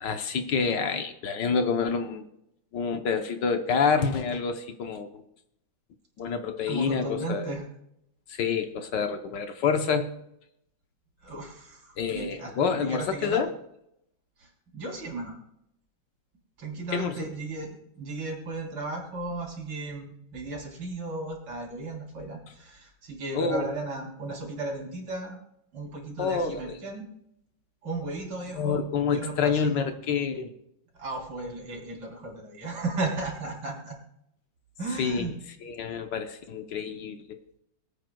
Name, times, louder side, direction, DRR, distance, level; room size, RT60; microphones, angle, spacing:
voice 1, 0.0-2.2 2.7-5.2 6.2-7.5 8.3-10.1 12.0-13.5 16.9-17.3 23.3-23.7 26.2-26.8 28.5-30.5 35.0-35.3 35.6-37.4, left 5 dB, 65° left, 7 dB, 1.5 m, -28 dB
voice 2, 6.7-7.6 11.2-11.8 12.1-13.4 14.7-15.3 16.6-17.7 18.0-25.4 25.7-27.1 27.8-28.8 29.1-29.9 31.0-34.0 34.8-35.3, right 2 dB, 80° right, -1 dB, 4.4 m, -35 dB
24.0 x 9.0 x 2.3 m, 0.78 s
omnidirectional pair, 2.2 m